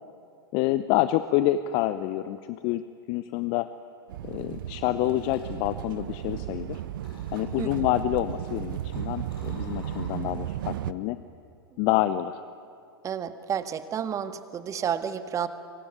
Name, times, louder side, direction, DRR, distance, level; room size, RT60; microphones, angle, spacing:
voice 1, 0.5-2.8 3.1-3.7 4.2-6.8 7.3-11.2 11.8-12.4, left 14 dB, 40° left, 13 dB, 0.9 m, -27 dB
sound 1, 4.1-10.9, right 12 dB, 55° right, 0.9 m, -35 dB
sound 2, 5.0-6.6 7.0-7.7 8.3-10.5 10.9-11.2, left 3 dB, 70° left, 7.4 m, -52 dB
voice 2, 13.0-15.5, right 8 dB, 25° right, 11 dB, 1.6 m, -31 dB
26.5 x 23.5 x 9.6 m, 2.5 s
figure-of-eight pair, 95°, 13 cm